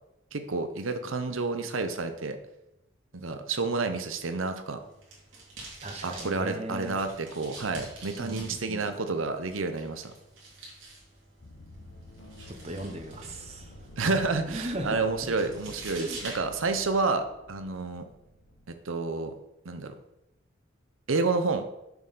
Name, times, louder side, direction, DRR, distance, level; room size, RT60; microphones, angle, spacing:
voice 1, 0.3-2.4 3.1-4.8 6.0-10.1 14.0-18.0 18.8-19.3 19.6-19.9 21.1-21.7, right 3 dB, 90° right, 8 dB, 0.8 m, -29 dB
sound 1, 4.8-17.1, right 2 dB, 70° right, 2.4 m, -47 dB
voice 2, 5.8-7.0 8.2-8.9 12.5-13.7 14.5-15.3 15.9-16.2, right 1 dB, 30° right, 5 dB, 0.9 m, -38 dB
sound 2, 11.4-18.7, left 1 dB, 70° left, 1.2 m, -49 dB
6.8 x 6.6 x 4.1 m, 0.88 s
head